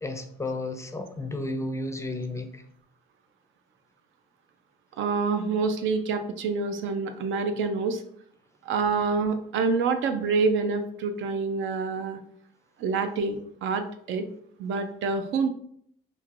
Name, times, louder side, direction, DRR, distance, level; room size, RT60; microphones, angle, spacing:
voice 1, 0.0-2.6, left 2 dB, 15° left, 0.4 m, -32 dB
voice 2, 5.0-8.0 8.7-12.2 12.8-14.2 14.6-15.5, right 4 dB, 80° right, 0.4 m, -27 dB
3.1 x 2.5 x 2.4 m
cardioid pair, 90°, 20 cm